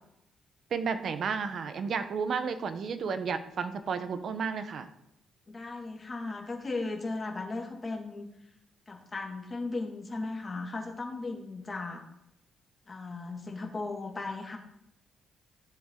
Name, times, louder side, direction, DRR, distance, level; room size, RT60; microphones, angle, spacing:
voice 1, 0.7-4.9, right 5 dB, 60° right, 10 dB, 1.0 m, -32 dB
voice 2, 5.5-8.3 8.9-12.0 12.9-14.6, left 3 dB, 30° left, 1 dB, 2.2 m, -36 dB
14.0 x 7.4 x 3.9 m, 0.84 s
cardioid pair, 90°, 0 cm